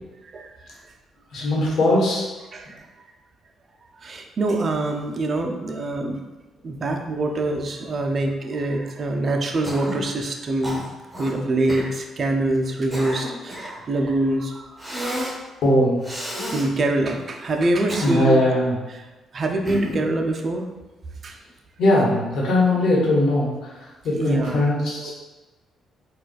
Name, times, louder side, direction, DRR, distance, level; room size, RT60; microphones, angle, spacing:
voice 1, 1.3-2.2 15.6-16.0 18.0-18.7 21.8-25.1, left 1 dB, 70° left, -5 dB, 1.1 m, -20 dB
voice 2, 2.5-2.9 4.0-6.2 6.6-10.9 11.2-14.8 16.5-18.4 18.9-19.0 19.3-20.7 21.2-21.4 24.2-24.6 25.0-25.1, right 2 dB, 45° right, 3 dB, 0.4 m, -25 dB
Cough, 9.6-10.1 10.6-11.3 11.7-11.9 12.6-13.8 14.8-15.4 16.0-16.7 17.6-18.5 19.6-20.1, equal, 10° right, 0.9 m, -31 dB
3.9 x 2.3 x 2.3 m, 1.1 s
cardioid pair, 90°, 0 cm